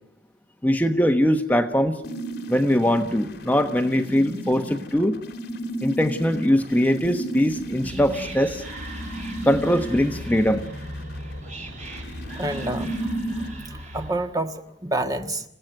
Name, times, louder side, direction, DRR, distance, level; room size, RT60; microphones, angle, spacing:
voice 1, 0.6-2.0 2.5-5.2 5.8-8.6 9.4-10.7, equal, 10° left, 1.1 m, -21 dB
sound 1, 2.0-13.5, right 1 dB, 60° left, 3.3 m, -34 dB
Whispering, 7.4-14.3, equal, 40° right, 4.8 m, -38 dB
voice 2, 12.4-15.4, right 1 dB, 20° right, 1.5 m, -29 dB
29.0 x 16.5 x 9.2 m
head